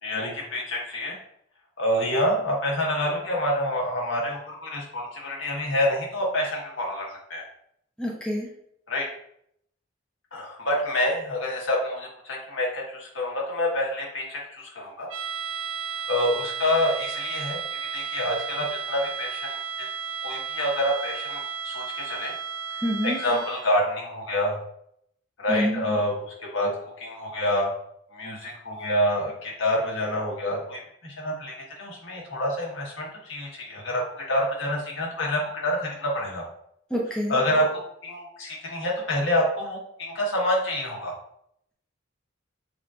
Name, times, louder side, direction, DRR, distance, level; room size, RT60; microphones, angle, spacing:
voice 1, 0.0-1.2 1.8-7.4 8.9-9.1 10.3-15.1 16.1-19.9 20.2-22.3 22.7-24.6 25.4-26.7 27.0-27.7 28.1-36.4 37.3-41.1, left 1 dB, 75° left, -2 dB, 1.4 m, -27 dB
voice 2, 8.0-8.5 22.8-23.2 25.5-25.8 36.9-37.4, equal, 5° left, -2 dB, 0.6 m, -26 dB
sound 1, 15.1-23.8, right 7 dB, 75° right, 0.5 m, -33 dB
6.7 x 2.6 x 2.4 m, 0.71 s
head